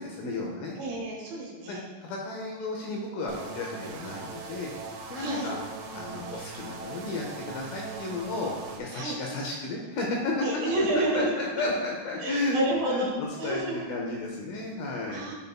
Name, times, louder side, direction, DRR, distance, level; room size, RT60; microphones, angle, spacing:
voice 1, 0.0-0.8 1.7-4.7 5.1-5.6 5.9-8.5 8.8-10.3 10.8-12.6 12.9-13.1 13.4-15.3, left 2 dB, 80° left, -1 dB, 2.3 m, -33 dB
voice 2, 0.8-1.8 5.1-5.5 8.9-9.2 10.4-11.6 12.2-13.9 15.1-15.3, right 1 dB, 70° right, -3 dB, 2.6 m, -30 dB
sound 1, 3.3-8.8, right 4 dB, 85° right, 2.0 m, -40 dB
10.5 x 4.0 x 2.3 m, 1.3 s
omnidirectional pair, 4.7 m